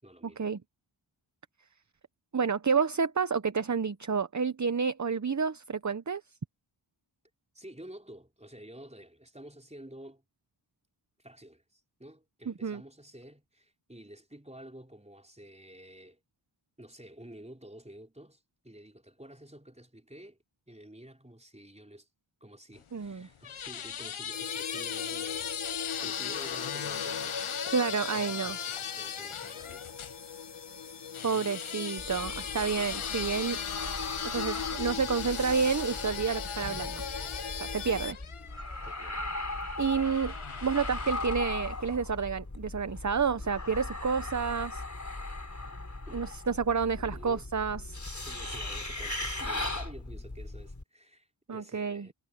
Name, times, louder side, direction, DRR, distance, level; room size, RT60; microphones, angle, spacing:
voice 1, 0.0-0.4 7.5-10.2 11.2-16.2 16.8-20.4 20.7-22.1 22.4-25.6 26.0-29.8 37.9-38.1 38.8-39.2 46.0-46.3 47.1-47.5 48.2-52.1, right 1 dB, 15° right, 4.3 m, -50 dB
voice 2, 2.3-6.2 12.5-12.8 22.9-23.3 27.7-28.6 31.2-33.6 34.3-37.0 37.6-38.2 39.8-40.4 40.6-44.8 46.1-48.0 51.5-52.1, right 5 dB, 35° right, 0.8 m, -29 dB
sound 1, 22.8-30.2 31.1-39.1 39.9-41.5, left 8 dB, 80° left, 0.9 m, -38 dB
sound 2, 24.3-38.1, left 6 dB, 60° left, 1.2 m, -40 dB
sound 3, 32.0-50.8, left 2 dB, 35° left, 4.4 m, -38 dB
wide cardioid pair, 50°, 49 cm